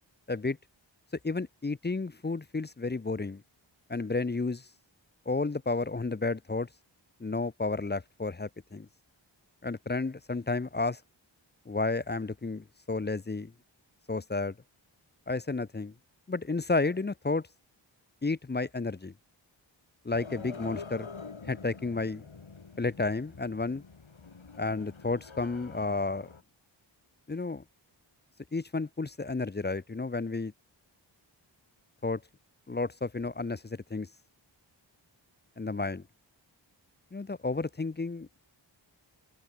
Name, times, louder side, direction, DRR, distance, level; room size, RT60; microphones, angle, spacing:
voice 1, 1.2-3.4 3.9-4.6 5.3-6.7 7.2-8.9 9.6-11.0 11.7-13.5 14.1-14.5 15.3-15.9 16.3-17.5 18.2-19.1 20.0-21.1 21.5-22.3 22.8-23.8 24.6-26.3 27.3-27.6 28.5-30.5 32.0-32.2 32.7-34.1 35.6-36.0 37.1-38.3, left 3 dB, 20° left, 0.6 m, -31 dB
sound 1, 20.1-26.4, left 4 dB, 75° left, 3.4 m, -46 dB
wide cardioid pair, 50°, 47 cm